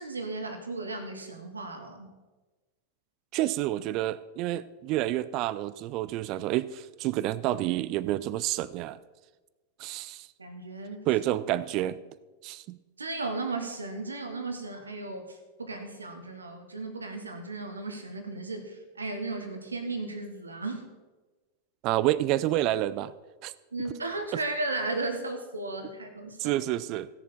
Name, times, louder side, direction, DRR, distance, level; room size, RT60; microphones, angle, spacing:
voice 1, 0.0-2.1 10.4-11.1 13.0-20.8 23.7-26.6, right 2 dB, 75° right, 6 dB, 1.4 m, -35 dB
voice 2, 3.3-9.0 9.8-10.3 11.1-12.0 12.4-12.8 21.8-23.1 23.4-23.5 26.4-27.1, right 14 dB, 40° right, 18 dB, 0.4 m, -29 dB
16.5 x 7.0 x 4.2 m, 1.2 s
figure-of-eight pair, 90°, 0 cm